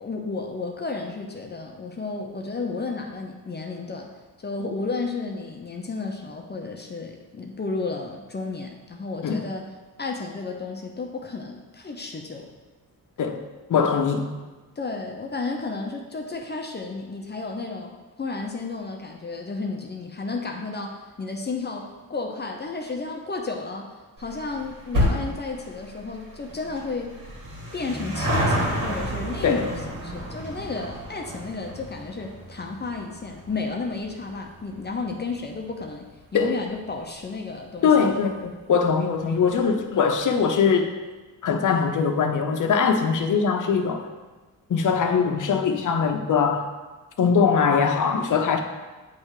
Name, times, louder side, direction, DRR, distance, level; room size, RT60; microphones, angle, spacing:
voice 1, 0.0-4.1 4.4-9.6 10.0-12.5 14.8-17.9 18.2-27.1 27.7-36.1 36.3-37.9, left 3 dB, 30° left, 2 dB, 0.8 m, -32 dB
voice 2, 13.7-14.3 29.4-29.6 36.3-36.6 37.8-40.9 41.4-44.1 44.7-46.7 47.2-48.6, left 6 dB, 60° left, 5 dB, 0.9 m, -21 dB
sound 1, 24.2-36.9 37.2-37.3 38.2-38.3 38.5-38.6 38.9-39.0, equal, 65° right, 2.4 m, -31 dB
9.4 x 3.3 x 4.9 m, 1.2 s
cardioid pair, 110°, 35 cm